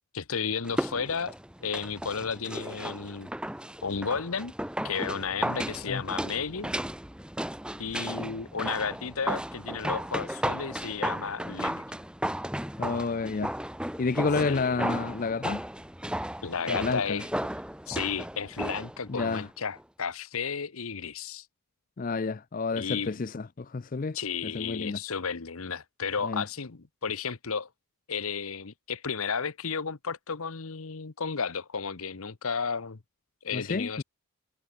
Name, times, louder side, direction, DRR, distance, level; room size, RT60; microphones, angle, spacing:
voice 1, 0.1-1.3 1.6-3.3 3.8-4.5 4.8-6.7 7.8-11.8 14.5-14.9 16.4-17.3 17.9-21.5 22.7-23.1 24.1-27.7 28.1-33.0 33.4-34.0, left 5 dB, 75° left, 1.0 m, -33 dB
sound 1, 0.6-19.5 19.8-19.9, right 1 dB, 5° right, 2.3 m, -35 dB
voice 2, 12.8-13.5 14.0-15.6 16.7-17.2 19.1-19.5 22.0-24.2 24.4-25.0 26.2-26.4 33.5-34.0, left 4 dB, 40° left, 0.4 m, -30 dB
head